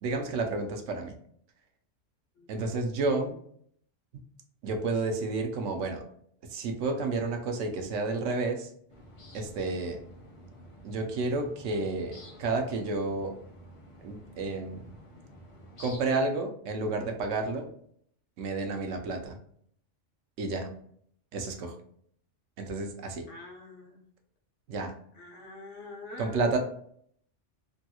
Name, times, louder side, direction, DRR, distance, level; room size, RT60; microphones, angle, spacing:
voice 1, 0.0-1.1 2.5-3.3 4.1-4.2 4.6-6.0 6.5-8.7 9.3-10.0 10.8-13.3 14.0-14.8 15.8-17.7 18.4-19.4 20.4-20.7 21.3-21.7 22.6-23.3 24.7-24.9 26.2-26.6, right 3 dB, 90° right, 4 dB, 1.0 m, -31 dB
sound 1, 8.9-16.0, equal, 40° left, 0.5 m, -50 dB
voice 2, 23.3-24.0 25.1-26.6, left 2 dB, 85° left, 0 dB, 1.2 m, -44 dB
3.3 x 2.3 x 2.8 m, 0.64 s
omnidirectional pair, 1.2 m